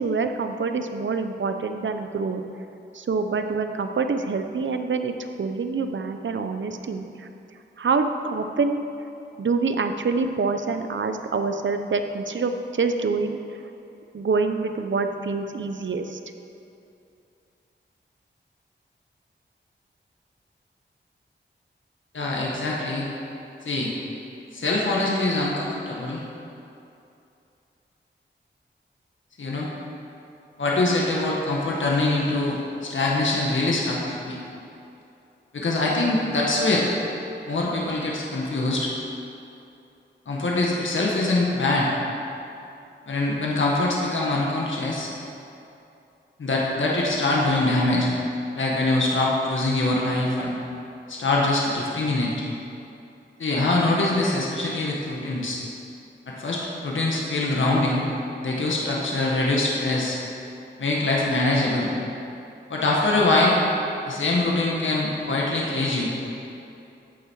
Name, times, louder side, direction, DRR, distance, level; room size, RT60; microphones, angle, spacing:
voice 1, 0.0-2.4 2.9-7.3 7.8-8.8 9.4-13.4 14.1-16.2, right 4 dB, 75° right, 7 dB, 0.8 m, -26 dB
voice 2, 22.1-23.1 23.6-23.9 24.5-26.2 29.4-29.7 30.6-34.4 35.5-36.9 37.5-38.9 40.2-41.9 43.1-45.1 46.4-48.1 48.6-50.6 51.1-52.3 53.4-55.6 56.3-58.1 58.4-60.2 60.8-61.9 62.7-63.6 64.1-66.1, left 2 dB, 85° left, -3 dB, 1.8 m, -23 dB
14.5 x 9.1 x 4.8 m, 2.7 s
wide cardioid pair, 80°, 19 cm